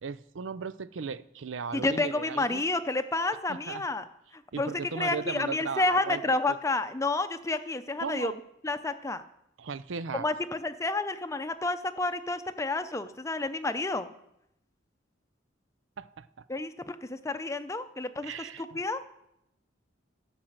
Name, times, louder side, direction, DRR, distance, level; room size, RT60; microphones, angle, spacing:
voice 1, 0.0-2.6 3.5-3.8 4.5-6.6 8.0-8.3 9.6-10.3 16.0-16.4 18.2-18.8, right 5 dB, 85° right, 15 dB, 0.5 m, -37 dB
voice 2, 1.7-4.0 4.3-8.3 8.6-9.2 10.2-14.1 16.5-18.3 18.6-19.0, left 2 dB, 15° left, 10 dB, 0.6 m, -30 dB
12.5 x 6.2 x 7.9 m, 0.82 s
head